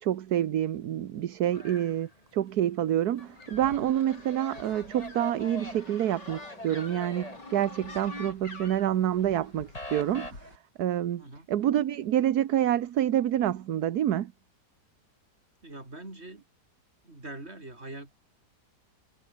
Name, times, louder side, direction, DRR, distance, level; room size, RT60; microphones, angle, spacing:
voice 1, 0.0-10.5 10.8-11.2 11.5-14.3, right 11 dB, 65° right, 1.4 m, -27 dB
sound 1, 1.5-2.6 2.9-8.4 8.7-10.3, left 1 dB, 20° left, 4.5 m, -44 dB
sound 2, 3.2-10.6, left 2 dB, 85° left, 7.2 m, -46 dB
voice 2, 15.6-16.4 17.0-18.1, right 2 dB, 35° right, 5.6 m, -43 dB
omnidirectional pair, 1.8 m